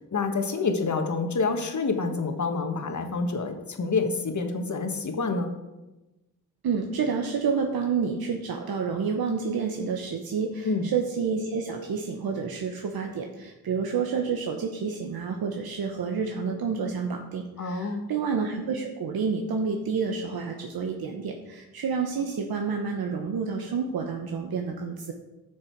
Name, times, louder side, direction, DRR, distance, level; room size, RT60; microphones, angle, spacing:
voice 1, 0.1-5.5 10.6-10.9 17.6-18.1, left 4 dB, 50° left, 5 dB, 1.4 m, -27 dB
voice 2, 6.6-25.1, right 5 dB, 75° right, 3 dB, 1.0 m, -29 dB
10.5 x 6.4 x 4.6 m, 1.1 s
cardioid pair, 70°, 37 cm